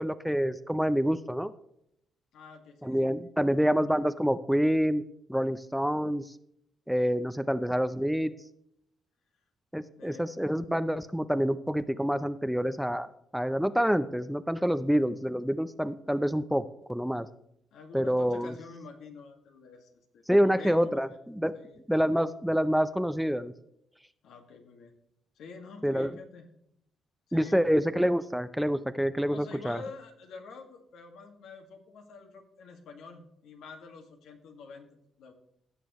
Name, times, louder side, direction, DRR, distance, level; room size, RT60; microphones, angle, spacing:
voice 1, 0.0-1.5 2.8-5.0 5.3-6.3 6.9-8.3 9.7-13.1 13.3-17.3 17.9-18.5 20.3-21.5 21.9-23.5 25.8-26.1 27.3-29.8, equal, ahead, 13 dB, 0.5 m, -27 dB
voice 2, 2.3-3.8 10.0-10.3 17.7-21.2 21.5-21.8 24.2-24.9 25.4-26.5 27.3-27.7 29.3-34.9 35.2-35.3, left 4 dB, 80° left, 4 dB, 1.8 m, -47 dB
16.5 x 6.9 x 3.0 m, 0.74 s
cardioid pair, 90°, 0 cm